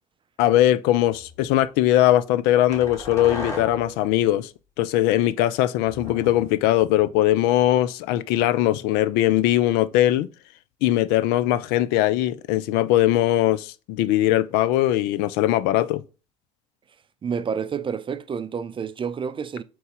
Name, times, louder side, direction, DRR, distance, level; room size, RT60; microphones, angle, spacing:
voice 1, 0.4-4.5 4.8-10.3 10.8-16.0, left 14 dB, 75° left, 0.4 m, -20 dB
sound 1, 1.1-1.4 2.7-4.0 5.9-7.1, left 2 dB, 15° left, 2.7 m, -36 dB
voice 2, 17.2-19.6, right 6 dB, 30° right, 0.5 m, -29 dB
4.0 x 3.1 x 3.6 m
hypercardioid pair, 65°, 17 cm